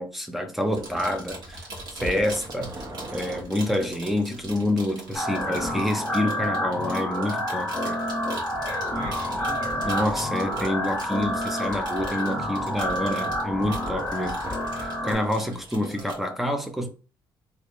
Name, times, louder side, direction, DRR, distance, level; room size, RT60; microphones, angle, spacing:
voice 1, 0.0-1.7 2.0-2.7 3.1-8.0 9.0-9.1 9.8-14.4 14.7-16.9, left 1 dB, ahead, 0.5 m, -27 dB
sound 1, 0.7-16.2, right 2 dB, 50° right, 1.3 m, -42 dB
sound 2, 2.0-3.4 5.2-5.8 8.5-14.9, equal, 35° right, 0.8 m, -40 dB
sound 3, 5.1-15.1, left 1 dB, 15° left, 1.1 m, -29 dB
voice 2, 8.6-10.3 15.4-16.1, right 1 dB, 65° right, 1.5 m, -42 dB
3.4 x 2.4 x 3.0 m
cardioid pair, 150°, 9 cm